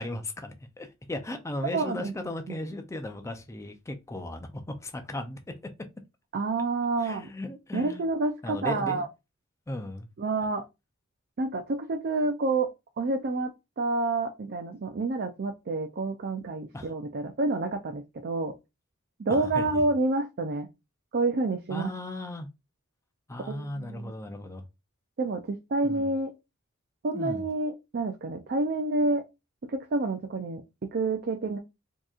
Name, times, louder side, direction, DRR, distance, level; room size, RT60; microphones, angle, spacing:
voice 1, 0.0-5.4 7.0-8.0 8.4-9.0 9.7-10.1 16.7-16.9 19.3-19.8 21.7-22.5 23.3-24.6 25.8-26.1 27.1-27.5, left 1 dB, 15° left, 0.5 m, -36 dB
voice 2, 1.7-2.6 6.3-7.3 7.7-9.1 10.2-10.6 11.4-18.6 19.2-20.7 21.1-21.9 23.4-24.2 25.2-26.3 27.0-29.2 29.7-31.6, right 3 dB, 50° right, 0.5 m, -29 dB
4.5 x 2.9 x 2.4 m
head